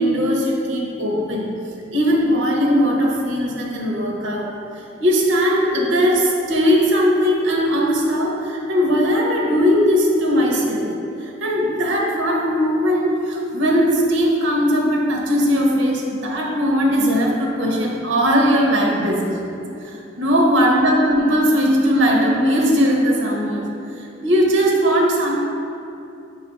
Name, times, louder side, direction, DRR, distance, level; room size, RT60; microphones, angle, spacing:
voice 1, 0.0-1.5 1.9-4.5 5.0-10.9 11.2-19.6 19.8-23.7 24.2-25.3, equal, 75° right, -1 dB, 0.7 m, -19 dB
5.0 x 2.4 x 4.1 m, 2.7 s
head